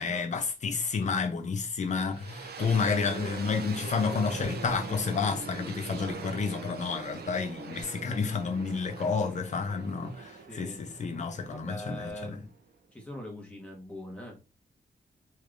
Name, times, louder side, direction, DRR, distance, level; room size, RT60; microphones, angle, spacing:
voice 1, 0.0-12.4, left 5 dB, 45° left, 0.6 m, -30 dB
sound 1, 1.8-12.8, right 5 dB, 75° right, 0.6 m, -42 dB
voice 2, 2.6-3.5 5.6-5.8 10.5-10.8 11.5-12.5 12.9-14.4, left 1 dB, 5° left, 1.2 m, -42 dB
3.3 x 3.2 x 2.5 m
wide cardioid pair, 145°, 17 cm